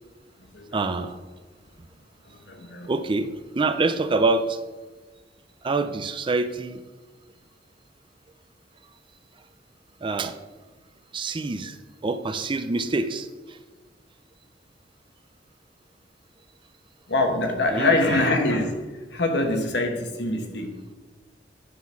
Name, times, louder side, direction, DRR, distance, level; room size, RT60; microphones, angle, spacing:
voice 1, 0.7-1.2 2.9-3.3 3.5-4.6 5.6-6.8 10.0-10.4 11.1-11.8 12.0-13.6 17.7-18.2, right 3 dB, 30° right, 9 dB, 0.4 m, -26 dB
voice 2, 2.3-2.9 17.1-18.7 19.1-20.8, left 2 dB, 70° left, 4 dB, 1.1 m, -24 dB
9.6 x 3.9 x 5.7 m, 1.3 s
head